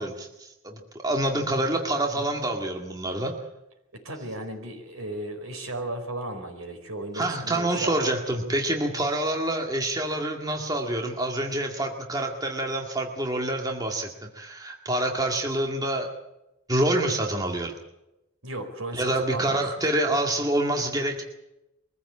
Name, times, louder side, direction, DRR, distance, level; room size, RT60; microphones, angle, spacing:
voice 1, 0.0-3.3 7.1-16.1 16.7-17.7 18.9-21.2, right 1 dB, 15° right, 2 dB, 2.0 m, -27 dB
voice 2, 3.9-8.1 18.4-19.6, right 1 dB, 80° right, 5 dB, 4.6 m, -35 dB
23.5 x 15.0 x 8.6 m, 0.93 s
head